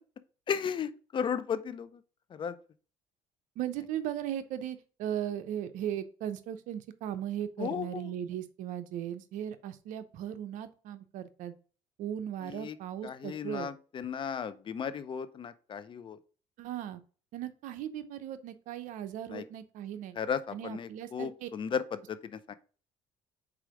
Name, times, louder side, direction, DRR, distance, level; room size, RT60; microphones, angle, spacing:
voice 1, 0.5-2.0 2.3-2.6 7.6-8.1 12.4-12.8 13.0-16.2 19.3-19.4 20.2-22.5, left 7 dB, 40° left, 14 dB, 0.6 m, -35 dB
voice 2, 3.6-11.6 12.0-13.7 16.6-17.0 17.3-20.2 20.5-21.5, right 10 dB, 75° right, 11 dB, 0.8 m, -37 dB
4.8 x 4.4 x 5.0 m, 0.38 s
cardioid pair, 110°, 13 cm